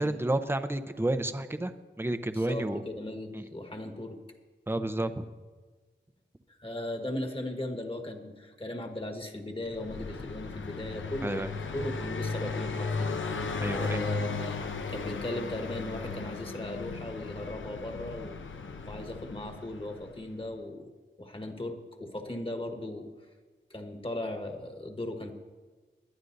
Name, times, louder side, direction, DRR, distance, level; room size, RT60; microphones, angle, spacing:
voice 1, 0.0-1.7 2.0-2.8 3.3-3.5 4.7-5.3 11.2-11.5 13.6-14.0, right 1 dB, 10° right, 9 dB, 0.6 m, -30 dB
voice 2, 2.3-4.2 6.6-13.2 13.9-14.6 14.9-18.4 18.9-20.9 21.2-23.1 23.7-25.3, left 1 dB, 30° left, 3 dB, 1.4 m, -37 dB
Car passing by, 9.7-20.3, left 4 dB, 90° left, 0.7 m, -36 dB
21.0 x 11.0 x 2.6 m, 1.4 s
wide cardioid pair, 80°, 19 cm